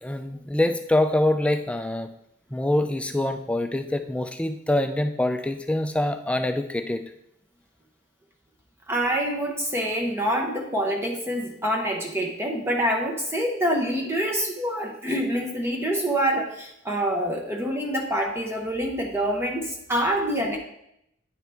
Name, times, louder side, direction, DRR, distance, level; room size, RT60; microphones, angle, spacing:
voice 1, 0.0-2.1 2.5-7.0, left 1 dB, 5° left, 7 dB, 0.3 m, -25 dB
voice 2, 8.9-20.6, equal, 15° right, 1 dB, 0.8 m, -26 dB
9.2 x 4.6 x 3.4 m, 0.77 s
head